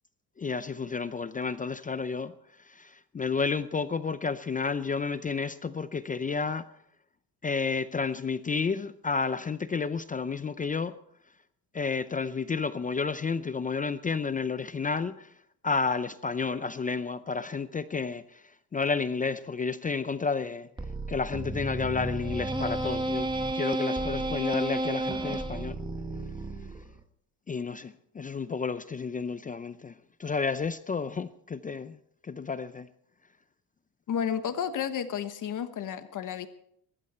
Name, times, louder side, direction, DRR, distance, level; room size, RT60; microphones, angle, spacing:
voice 1, 0.4-2.3 2.6-6.6 7.4-11.0 11.7-15.3 15.6-18.4 18.7-20.7 21.1-23.3 23.5-25.8 27.5-29.9 30.2-32.9, left 5 dB, 20° left, 0.5 m, -31 dB
sound 1, 20.8-27.0, right 2 dB, 10° right, 1.1 m, -32 dB
voice 2, 34.1-36.5, left 8 dB, 50° left, 1.2 m, -31 dB
22.5 x 13.0 x 4.3 m
cardioid pair, 125°, 39 cm